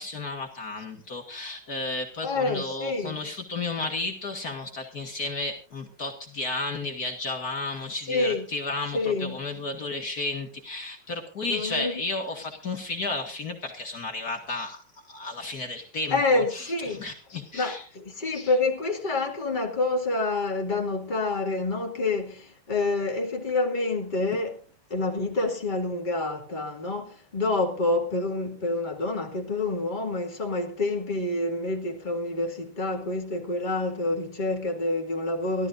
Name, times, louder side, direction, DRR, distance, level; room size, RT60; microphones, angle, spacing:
voice 1, 0.0-17.9 24.3-24.4, left 3 dB, 50° left, 2.3 m, -33 dB
voice 2, 2.2-3.2 8.1-8.4 8.9-9.4 11.4-12.0 16.1-24.6 24.9-35.7, left 2 dB, 25° left, 2.4 m, -28 dB
26.0 x 13.0 x 2.6 m
omnidirectional pair, 2.1 m